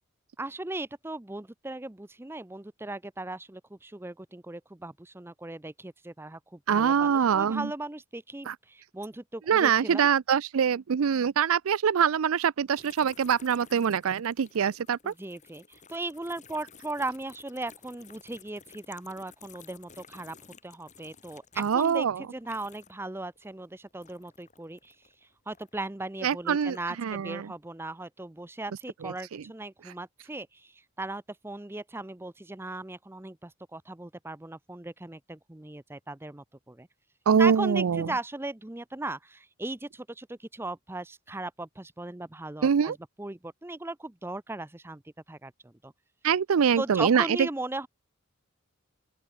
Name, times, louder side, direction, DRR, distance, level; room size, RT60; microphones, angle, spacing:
voice 1, 0.4-10.1 15.0-20.4 20.6-25.1 25.5-36.9 37.4-45.0 45.3-45.9 46.7-47.9, right 2 dB, 10° right, 0.6 m, -38 dB
voice 2, 6.7-7.7 8.5-8.6 9.5-15.1 21.6-22.2 26.2-27.5 29.0-29.4 37.3-38.1 42.6-43.0 46.2-47.4, right 7 dB, 75° right, 0.4 m, -24 dB
sound 1, 12.7-23.1 23.4-25.9 26.4-27.2, left 6 dB, 35° left, 5.5 m, -54 dB
open air
head